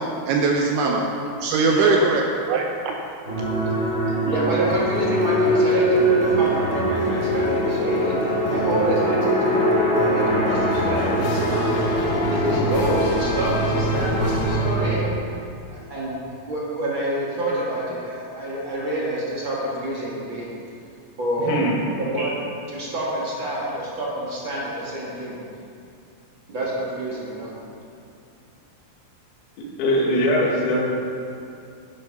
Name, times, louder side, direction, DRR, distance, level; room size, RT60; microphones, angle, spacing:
voice 1, 0.3-1.1 1.4-3.0, right 3 dB, 80° right, 1 dB, 2.8 m, -21 dB
sound 1, 3.2-14.9, right 1 dB, 20° right, 2.7 m, -22 dB
voice 2, 4.2-9.6 9.9-15.0 15.7-16.2 16.5-20.5 21.2-21.6 22.0-22.4 22.7-25.3 26.5-27.5, right 1 dB, 45° right, -6 dB, 1.6 m, -27 dB
sound 2, 4.7-15.1, left 2 dB, 75° left, 3.0 m, -31 dB
voice 3, 21.4-21.8 29.6-30.8, equal, 90° left, -2 dB, 4.8 m, -21 dB
12.5 x 11.0 x 5.5 m, 2.5 s
omnidirectional pair, 5.9 m